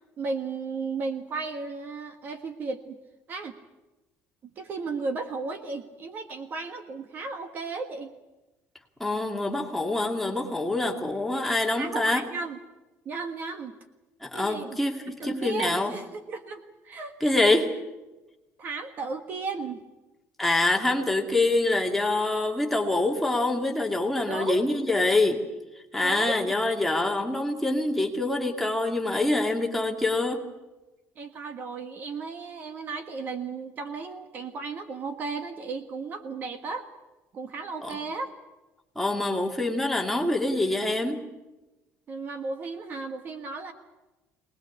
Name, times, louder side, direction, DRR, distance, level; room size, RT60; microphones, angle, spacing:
voice 1, 0.2-3.0 3.3-3.6 4.6-8.1 11.8-12.6 13.0-13.7 14.3-14.8 15.2-17.4 18.6-19.8 24.3-24.8 26.0-26.5 31.2-36.9 37.3-38.3 42.1-43.7, right 4 dB, 35° right, 8 dB, 1.5 m, -34 dB
voice 2, 9.0-12.2 14.2-15.9 17.2-17.7 20.4-25.4 25.9-30.4 37.8-37.9 39.0-41.2, left 2 dB, 5° left, 1 dB, 2.3 m, -25 dB
24.0 x 19.5 x 8.4 m, 1.1 s
cardioid pair, 175°, 5 cm